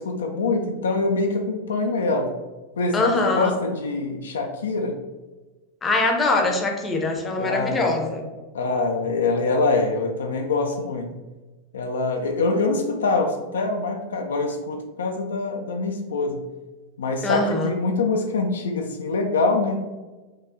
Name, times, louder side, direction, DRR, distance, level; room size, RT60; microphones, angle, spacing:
voice 1, 0.0-2.3 2.8-5.0 7.4-7.9 8.5-11.1 11.7-16.4 17.0-19.8, left 3 dB, 65° left, 3 dB, 0.3 m, -24 dB
voice 2, 2.9-3.5 5.8-8.2 17.2-17.7, left 2 dB, 20° left, 2 dB, 0.6 m, -23 dB
4.5 x 2.3 x 2.5 m, 1.2 s
figure-of-eight pair, 90°, 0 cm